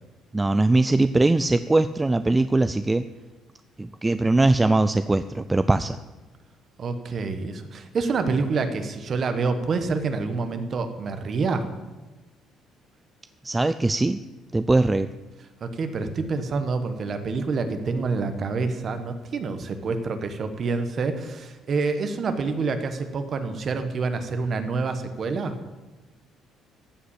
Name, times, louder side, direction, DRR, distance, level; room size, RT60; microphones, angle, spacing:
voice 1, 0.3-3.1 3.8-6.0 13.4-14.2 14.5-15.1, right 2 dB, 10° right, 12 dB, 0.3 m, -21 dB
voice 2, 6.8-11.7 15.6-25.6, right 4 dB, 40° right, 8 dB, 1.2 m, -27 dB
14.0 x 5.1 x 8.5 m, 1.2 s
cardioid pair, 140°, 0 cm